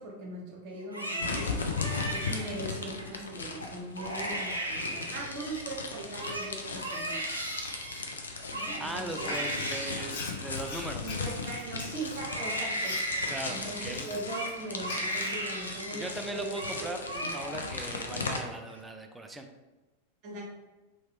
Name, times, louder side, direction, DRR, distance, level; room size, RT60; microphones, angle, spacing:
voice 1, 0.0-1.6 2.1-7.2 8.5-9.3 11.0-12.9 13.5-17.3 20.2-20.4, right 2 dB, 40° right, -3 dB, 1.1 m, -40 dB
Crying sobbing, 0.8-3.1 3.6-3.7 4.0-5.7 6.0-11.7 12.2-16.1 16.4-16.8 17.0-17.8 18.1-18.7, equal, 85° right, 0.5 m, -36 dB
sound 1, 1.2-18.4, left 4 dB, 70° left, 0.4 m, -38 dB
voice 2, 8.8-11.2 13.3-14.1 15.9-17.0 17.3-19.5, right 2 dB, 10° right, 5 dB, 0.4 m, -39 dB
Frying (food), 9.2-14.5 14.8-15.7, left 3 dB, 50° left, 1.1 m, -43 dB
3.0 x 2.9 x 2.8 m, 1.1 s
figure-of-eight pair, 90°, 0 cm